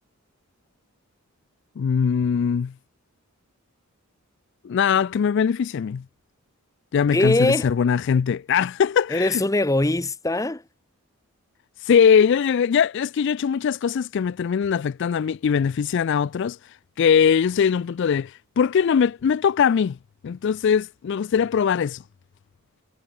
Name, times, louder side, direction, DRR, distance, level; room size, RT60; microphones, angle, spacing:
voice 1, 1.8-2.7 4.6-6.0 6.9-9.4 11.8-16.6 17.0-20.0 20.2-22.0, left 7 dB, 55° left, 0.3 m, -21 dB
voice 2, 7.1-7.7 9.1-10.6, left 2 dB, 15° left, 0.7 m, -21 dB
head